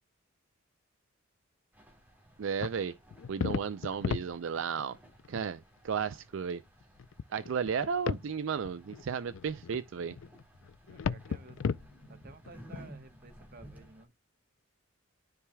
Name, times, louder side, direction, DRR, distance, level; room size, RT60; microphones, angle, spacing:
sound 1, 1.7-14.0, right 1 dB, 10° right, 2.0 m, -56 dB
voice 1, 2.4-3.0 3.3-5.0 5.3-6.6 7.3-10.2, right 6 dB, 65° right, 0.4 m, -34 dB
sound 2, 2.6-4.9 5.2-5.4 6.0-6.1 6.8-8.3 8.6-12.8, left 5 dB, 65° left, 0.4 m, -35 dB
voice 2, 10.9-11.6 12.1-14.1, right 3 dB, 45° right, 1.1 m, -54 dB
13.0 x 4.7 x 2.2 m
head